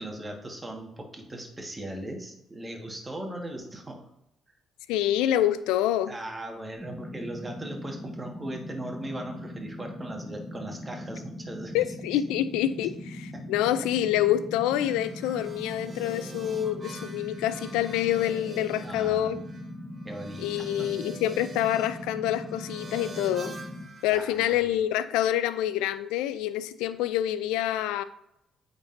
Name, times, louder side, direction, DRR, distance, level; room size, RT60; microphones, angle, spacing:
voice 1, 0.0-4.0 6.1-11.7 13.3-13.4 18.8-19.5 20.0-20.9 24.1-24.7, right 1 dB, 20° right, 2 dB, 1.6 m, -39 dB
voice 2, 4.9-6.1 11.7-19.4 20.4-23.5 24.0-28.0, left 12 dB, 80° left, 14 dB, 0.3 m, -27 dB
sound 1, 6.7-23.9, left 1 dB, 5° left, 1.2 m, -40 dB
sound 2, 14.8-24.8, right 3 dB, 45° right, 1.3 m, -46 dB
8.7 x 4.0 x 2.6 m, 0.82 s
hypercardioid pair, 55°, 0 cm